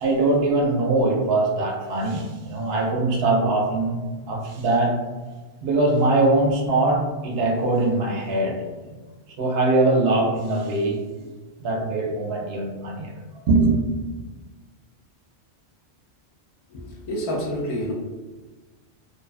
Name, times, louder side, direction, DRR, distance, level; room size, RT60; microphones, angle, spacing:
voice 1, 0.0-4.0 4.3-5.0 5.6-8.6 9.4-11.0 11.6-13.1 13.5-13.7, right 2 dB, 65° right, 0 dB, 0.7 m, -22 dB
voice 2, 16.7-17.9, equal, 55° left, -4 dB, 0.3 m, -28 dB
2.5 x 2.2 x 2.4 m, 1.3 s
omnidirectional pair, 1.2 m